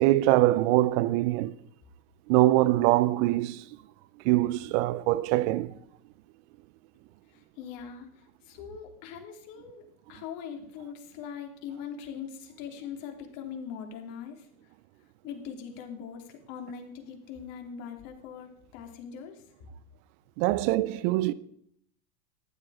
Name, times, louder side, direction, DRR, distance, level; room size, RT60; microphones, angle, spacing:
voice 1, 0.0-1.5 2.3-3.6 4.2-5.8 20.4-21.3, right 16 dB, 50° right, 0.8 m, -23 dB
voice 2, 7.3-14.5 15.2-19.5, left 7 dB, 55° left, 3.3 m, -41 dB
15.0 x 11.0 x 4.9 m
hypercardioid pair, 110°, 43 cm